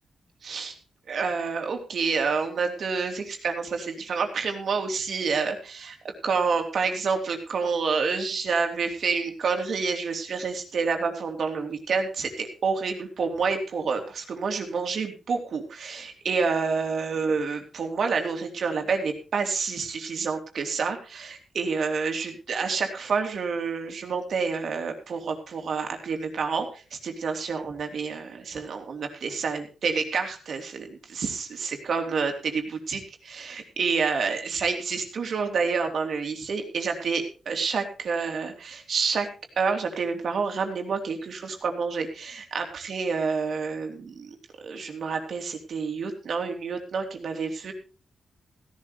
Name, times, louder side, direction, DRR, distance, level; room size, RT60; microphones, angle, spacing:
voice 1, 0.4-0.8 1.1-39.3 39.6-44.3 44.6-47.7, right 5 dB, 65° right, 4 dB, 3.2 m, -28 dB
16.5 x 12.0 x 3.5 m, 0.35 s
cardioid pair, 85°, 0 cm